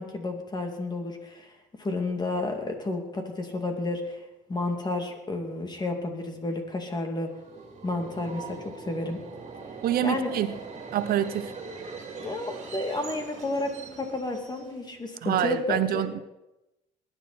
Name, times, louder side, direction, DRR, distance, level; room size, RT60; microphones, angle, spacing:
voice 1, 0.0-1.5 1.8-4.2 4.5-7.3 7.8-9.2 10.0-10.3 12.2-16.0, left 2 dB, 25° left, 4 dB, 2.6 m, -31 dB
Subway metro underground, 7.3-15.0, right 4 dB, 40° right, 2.8 m, -41 dB
voice 2, 9.8-10.5 10.9-11.5 15.2-16.2, right 11 dB, 60° right, 13 dB, 0.7 m, -26 dB
20.5 x 11.0 x 4.3 m, 0.95 s
cardioid pair, 110°, 17 cm